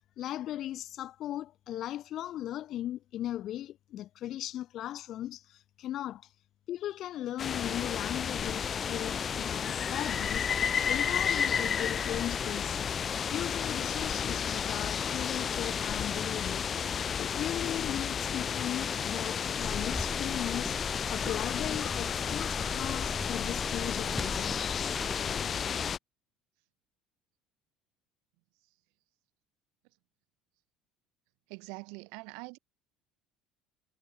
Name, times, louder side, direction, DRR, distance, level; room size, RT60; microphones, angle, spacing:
voice 1, 0.2-6.3 6.7-10.5 10.8-12.8 13.3-16.7 17.2-24.7, left 13 dB, 50° left, 2.4 m, -38 dB
sound 1, 7.4-26.0, left 7 dB, 30° left, 0.6 m, -32 dB
sound 2, 19.6-25.2, left 1 dB, 5° left, 4.3 m, -40 dB
voice 2, 31.5-32.6, right 33 dB, 80° right, 6.6 m, -44 dB
cardioid pair, 130°, 0 cm